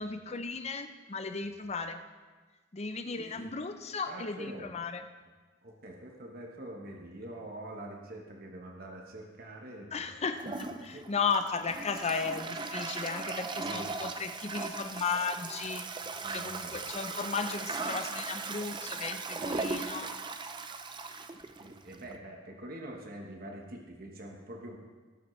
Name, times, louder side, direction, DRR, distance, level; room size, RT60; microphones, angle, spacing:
voice 1, 0.0-2.0 2.7-5.0 9.9-10.4 10.8-15.9 16.3-20.1, left 5 dB, 35° left, 8 dB, 0.6 m, -35 dB
voice 2, 3.2-3.5 4.1-4.7 5.6-10.2 10.9-11.0 13.6-14.0 16.0-16.8 21.6-24.8, right 1 dB, 50° right, 1 dB, 1.1 m, -45 dB
Toilet flush, 10.4-22.2, right 4 dB, 25° right, 0.5 m, -38 dB
17.5 x 7.1 x 3.2 m, 1.4 s
head